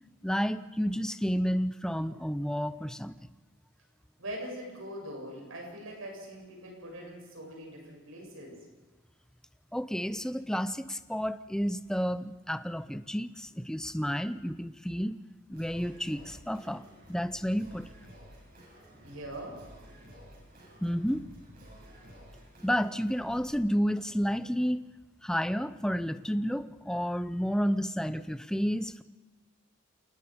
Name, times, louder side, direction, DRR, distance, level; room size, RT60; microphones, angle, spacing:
voice 1, 0.2-3.2 9.7-15.2 15.5-16.8 17.1-17.9 20.8-21.2 22.6-24.9 25.2-29.0, equal, 5° left, 12 dB, 0.6 m, -31 dB
voice 2, 4.2-8.7 19.0-19.6, right 1 dB, 90° right, 0 dB, 7.9 m, -42 dB
Singing, 15.5-23.5, equal, 45° right, 6.7 m, -53 dB
28.0 x 18.5 x 5.2 m, 1.2 s
head